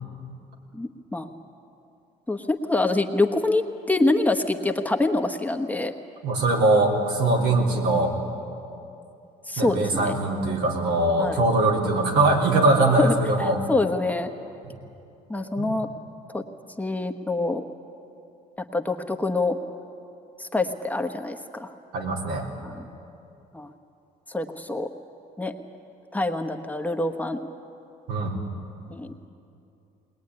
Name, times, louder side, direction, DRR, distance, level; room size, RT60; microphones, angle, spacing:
voice 1, 0.7-1.3 2.3-5.9 9.5-10.1 11.2-11.4 13.0-13.2 13.7-14.3 15.3-15.9 16.3-16.4 16.8-17.6 18.7-19.6 20.4-21.7 22.6-22.8 23.5-23.7 24.3-24.9 25.4-25.5 26.1-27.4 28.9-29.1, left 2 dB, 10° left, 5 dB, 1.2 m, -25 dB
voice 2, 6.2-8.1 9.6-13.6 14.6-14.8 15.6-15.8 21.9-22.5 28.1-28.4, right 2 dB, 85° right, -1 dB, 3.8 m, -22 dB
21.0 x 20.5 x 9.7 m, 2.7 s
cardioid pair, 110°, 17 cm